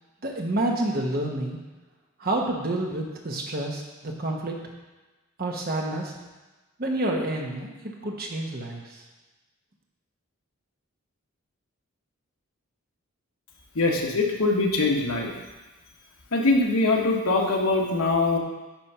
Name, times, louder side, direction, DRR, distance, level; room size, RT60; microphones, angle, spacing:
voice 1, 0.2-1.6 2.2-4.6 5.4-6.1 6.8-9.0, right 1 dB, 40° right, 0 dB, 1.1 m, -29 dB
voice 2, 13.7-15.3 16.3-18.4, left 3 dB, 75° left, 0 dB, 1.2 m, -22 dB
10.0 x 3.5 x 5.6 m, 1.2 s
head